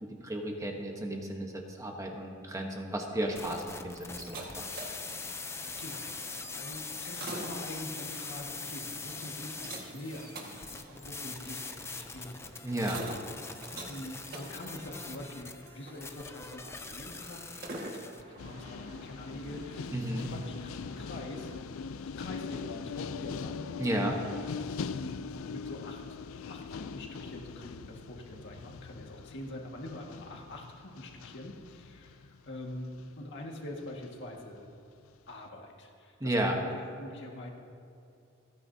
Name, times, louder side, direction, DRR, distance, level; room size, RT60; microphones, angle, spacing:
voice 1, 0.0-4.7 12.6-13.1 19.9-20.3 23.8-24.2 36.2-36.5, right 1 dB, 15° right, 1 dB, 1.1 m, -33 dB
sound 1, 3.1-21.6, right 1 dB, 50° right, 1.8 m, -47 dB
sound 2, 3.4-18.2, left 4 dB, 15° left, 0.6 m, -43 dB
voice 2, 4.7-5.2 5.8-6.1 6.5-12.5 13.9-21.5 22.0-23.6 24.8-26.0 26.5-34.7 35.3-37.5, left 1 dB, 60° left, 0 dB, 1.9 m, -44 dB
sound 3, 18.4-33.3 34.0-34.3, left 5 dB, 80° left, 0.4 m, -41 dB
28.5 x 9.8 x 2.8 m, 2.6 s
head